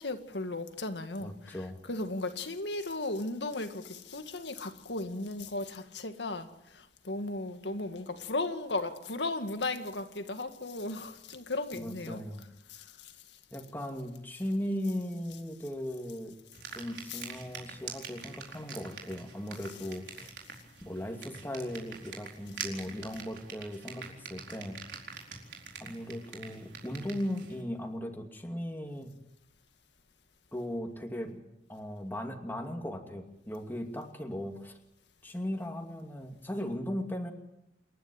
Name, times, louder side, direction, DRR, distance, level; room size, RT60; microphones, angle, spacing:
voice 1, 0.0-1.6 1.9-12.2 12.7-13.1 17.1-17.2, left 2 dB, 85° left, 1.9 m, -36 dB
voice 2, 1.2-1.8 11.7-12.5 13.5-16.4 16.7-20.3 20.8-24.8 25.8-29.2 30.5-31.4 31.7-34.8 35.2-37.3, equal, 10° left, 2.5 m, -37 dB
sound 1, 16.5-27.6, right 6 dB, 85° right, 4.5 m, -45 dB
28.5 x 11.5 x 9.5 m
head